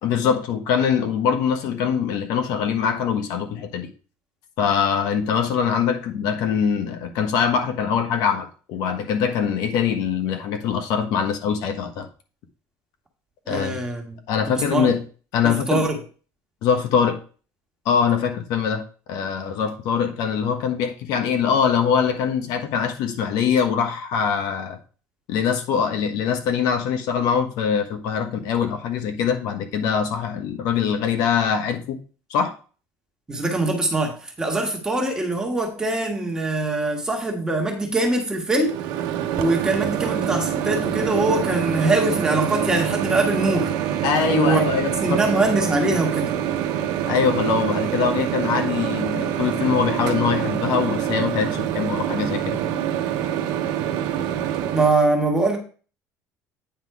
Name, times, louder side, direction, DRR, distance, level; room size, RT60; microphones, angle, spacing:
voice 1, 0.0-3.9 4.6-12.1 13.5-13.8 14.3-15.0 15.3-15.8 16.6-17.2 17.8-24.8 25.3-32.0 32.3-32.5 44.0-45.2 47.1-52.6, left 7 dB, 75° left, 1.2 m, -23 dB
voice 2, 13.5-14.2 14.5-14.9 15.4-16.0 33.3-38.8 39.4-43.7 44.3-46.3 54.7-55.6, right 2 dB, 10° right, 1.5 m, -23 dB
Microwave oven, 38.6-54.9, right 10 dB, 85° right, 0.9 m, -25 dB
9.2 x 4.1 x 4.7 m
cardioid pair, 160°, 7 cm